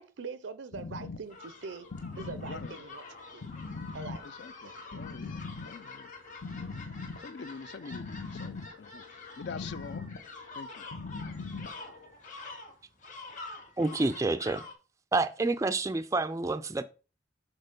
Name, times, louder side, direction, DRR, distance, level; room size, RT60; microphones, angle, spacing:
voice 1, 0.0-1.9 2.2-3.0 3.3-3.5 3.9-4.3 4.6-5.0 6.6-6.7, right 4 dB, 85° right, 0.5 m, -43 dB
sound 1, 0.7-12.1, left 4 dB, 85° left, 0.8 m, -42 dB
sound 2, 1.3-14.7, left 3 dB, 45° left, 1.8 m, -47 dB
voice 2, 2.4-2.9 4.2-6.1 7.2-10.0 10.5-10.9, left 5 dB, 65° left, 0.4 m, -45 dB
voice 3, 13.8-14.6 15.1-16.8, right 3 dB, 15° right, 0.3 m, -28 dB
6.6 x 4.2 x 5.1 m
head